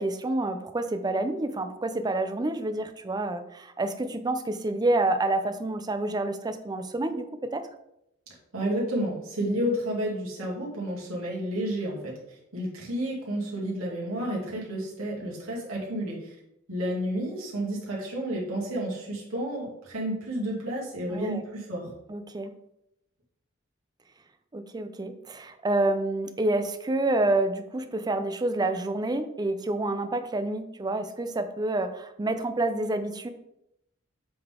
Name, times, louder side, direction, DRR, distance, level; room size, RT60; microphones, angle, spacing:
voice 1, 0.0-7.6 21.1-21.4 22.1-22.5 24.5-33.3, right 2 dB, 20° right, 9 dB, 0.5 m, -28 dB
voice 2, 8.5-12.1 12.5-16.3 16.7-21.9, equal, 90° right, -4 dB, 2.3 m, -31 dB
7.7 x 3.8 x 3.7 m, 0.79 s
head